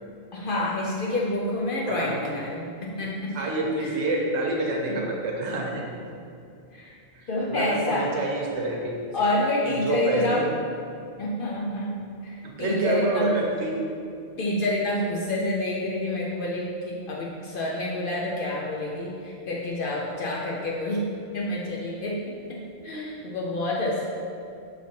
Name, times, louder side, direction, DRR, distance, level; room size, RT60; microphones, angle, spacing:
voice 1, 0.3-3.3 3.8-4.0 4.9-5.0 6.7-6.9 7.3-8.1 9.1-10.5 11.2-11.9 12.2-13.3 14.4-21.0 21.3-24.1, left 1 dB, 60° left, -3 dB, 0.6 m, -28 dB
voice 2, 3.3-5.9 7.1-9.0 9.6-10.4 12.4-13.7, right 2 dB, 75° right, -1 dB, 1.0 m, -27 dB
5.5 x 3.1 x 2.8 m, 2.5 s
omnidirectional pair, 1.2 m